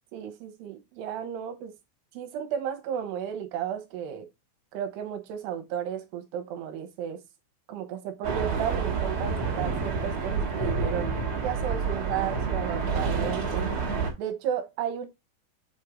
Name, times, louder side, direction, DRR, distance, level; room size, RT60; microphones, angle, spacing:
voice 1, 0.1-1.7 2.1-4.3 4.7-7.2 7.7-11.1 11.4-13.7 14.2-15.1, right 9 dB, 75° right, 2.9 m, -33 dB
sound 1, 8.2-14.1, right 5 dB, 55° right, 1.9 m, -28 dB
7.6 x 2.7 x 4.9 m
omnidirectional pair, 5.3 m